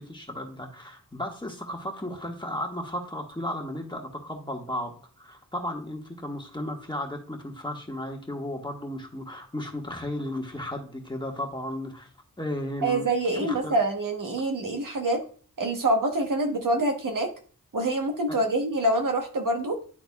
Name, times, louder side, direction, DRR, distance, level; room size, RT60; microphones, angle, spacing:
voice 1, 0.0-12.1 12.4-13.1 13.3-13.7 18.3-18.4, left 1 dB, 15° left, 1 dB, 1.5 m, -34 dB
voice 2, 12.8-15.2 15.6-17.3 17.7-19.8, right 1 dB, 70° right, 3 dB, 1.2 m, -26 dB
11.0 x 3.9 x 2.3 m, 0.42 s
wide cardioid pair, 75°, 34 cm